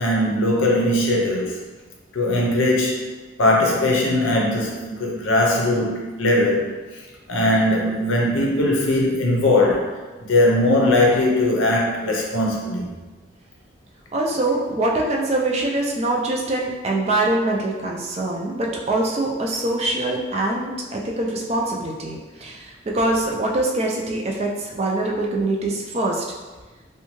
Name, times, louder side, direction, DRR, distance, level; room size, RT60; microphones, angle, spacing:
voice 1, 0.0-1.6 2.1-3.1 3.4-6.7 7.3-9.9 10.3-12.9, left 1 dB, 90° left, -2 dB, 0.6 m, -20 dB
voice 2, 14.1-26.2, right 2 dB, 30° right, -1 dB, 0.3 m, -24 dB
2.6 x 2.2 x 3.0 m, 1.3 s
head